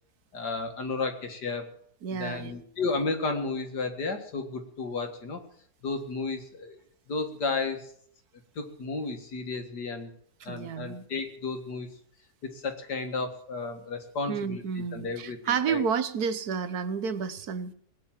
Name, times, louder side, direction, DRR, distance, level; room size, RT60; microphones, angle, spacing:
voice 1, 0.3-1.6 2.2-5.4 5.8-6.8 7.1-7.9 8.6-10.1 10.5-11.9 12.6-15.8, left 3 dB, 85° left, 6 dB, 2.4 m, -33 dB
voice 2, 2.0-2.6 10.4-11.0 14.3-17.7, right 6 dB, 70° right, 12 dB, 1.5 m, -31 dB
19.0 x 9.3 x 7.5 m, 0.64 s
omnidirectional pair, 1.7 m